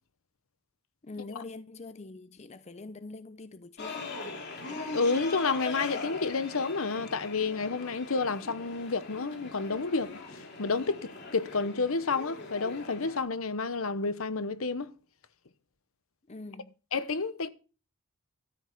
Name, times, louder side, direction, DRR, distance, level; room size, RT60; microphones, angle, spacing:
voice 1, 1.0-4.1 16.3-16.8, left 3 dB, 30° left, 0.5 m, -44 dB
sound 1, 3.8-13.2, left 3 dB, 55° left, 2.5 m, -41 dB
voice 2, 4.9-14.9 16.9-17.5, left 4 dB, 75° left, 0.9 m, -30 dB
13.5 x 5.3 x 8.2 m
head